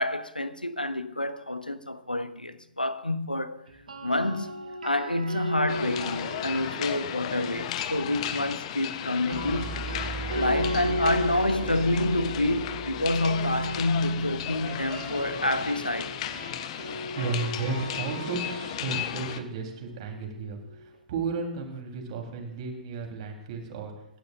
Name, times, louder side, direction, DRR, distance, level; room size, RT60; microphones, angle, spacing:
voice 1, 0.0-3.6 4.0-4.5 4.8-9.9 10.3-16.2, left 1 dB, 90° left, 0.7 m, -28 dB
sound 1, 3.7-7.8 9.1-21.0, equal, 70° right, 1.6 m, -37 dB
sound 2, 5.7-19.4, left 11 dB, 45° left, 0.8 m, -35 dB
sound 3, 9.3-15.3, right 5 dB, 5° right, 1.4 m, -40 dB
voice 2, 16.9-23.9, right 4 dB, 45° right, 3.4 m, -34 dB
25.5 x 12.0 x 2.5 m
figure-of-eight pair, 110°, 5 cm